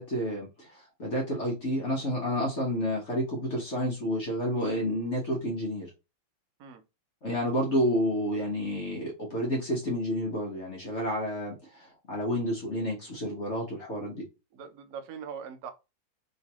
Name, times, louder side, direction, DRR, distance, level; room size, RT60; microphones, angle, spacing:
voice 1, 0.0-5.9 7.2-14.2, equal, 45° left, 1.0 m, -30 dB
voice 2, 14.5-15.7, right 7 dB, 65° right, 0.9 m, -41 dB
3.1 x 3.1 x 2.8 m
omnidirectional pair, 2.1 m